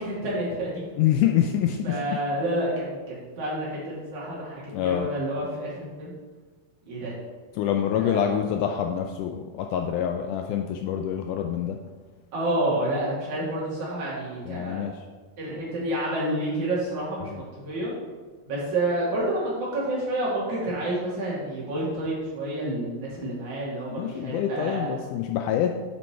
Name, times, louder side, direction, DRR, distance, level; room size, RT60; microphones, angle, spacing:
voice 1, 0.0-0.9 1.8-6.2 6.9-7.1 8.0-8.3 12.3-14.9 15.4-17.9 18.5-25.0, right 1 dB, 55° right, -7 dB, 3.6 m, -29 dB
voice 2, 1.0-2.0 4.7-5.1 7.6-11.8 14.4-14.9 17.2-17.4 23.9-25.7, left 10 dB, 85° left, 4 dB, 1.8 m, -26 dB
9.4 x 5.4 x 4.4 m, 1.3 s
omnidirectional pair, 4.2 m